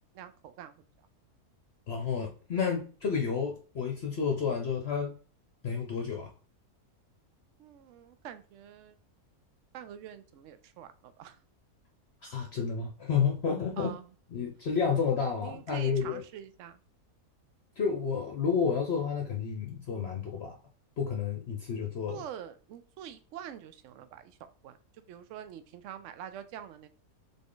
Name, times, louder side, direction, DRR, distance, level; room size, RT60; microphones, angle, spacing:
voice 1, 0.1-0.8 7.6-9.0 9.7-11.4 13.8-14.0 15.4-16.8 22.1-24.8 25.1-26.9, right 10 dB, 70° right, 11 dB, 0.8 m, -45 dB
voice 2, 1.9-5.1 5.6-6.3 12.2-13.9 14.3-16.2 17.8-20.5 21.0-22.2, left 6 dB, 55° left, 2 dB, 0.9 m, -30 dB
3.8 x 3.5 x 3.8 m, 0.40 s
omnidirectional pair, 1.5 m